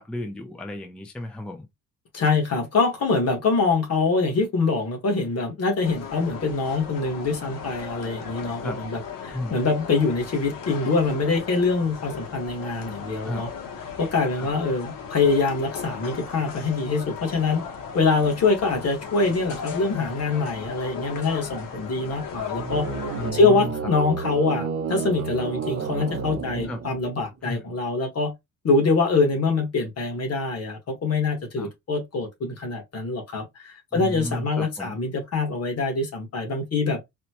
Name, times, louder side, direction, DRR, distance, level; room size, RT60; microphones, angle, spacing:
voice 1, 0.0-1.7 8.6-8.8 9.3-9.6 13.2-13.4 14.3-14.5 23.1-23.7 26.6-26.8 27.4-27.6 31.6-31.7 33.9-34.9, left 1 dB, 5° left, 0.4 m, -33 dB
voice 2, 2.1-13.5 14.0-17.6 17.9-22.9 23.3-28.3 28.6-37.0, left 3 dB, 50° left, 1.4 m, -24 dB
sound 1, 5.8-23.3, left 6 dB, 85° left, 1.1 m, -37 dB
sound 2, 22.5-27.3, right 5 dB, 45° right, 0.7 m, -31 dB
4.1 x 2.1 x 2.9 m
wide cardioid pair, 165°, 33 cm